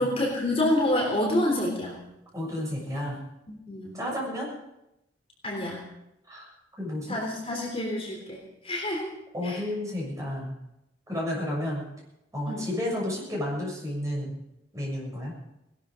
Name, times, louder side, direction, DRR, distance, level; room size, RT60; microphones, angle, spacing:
voice 1, 0.0-2.0 3.5-3.9 5.4-5.8 7.1-9.1 9.4-9.6 12.5-12.7, left 1 dB, 30° left, -1 dB, 3.5 m, -28 dB
voice 2, 2.3-3.2 3.9-4.5 6.3-6.5 6.8-7.2 9.3-10.6 11.1-11.9 12.3-14.4 14.7-15.3, left 1 dB, 15° right, -4 dB, 6.9 m, -31 dB
19.5 x 12.5 x 5.1 m, 0.87 s
head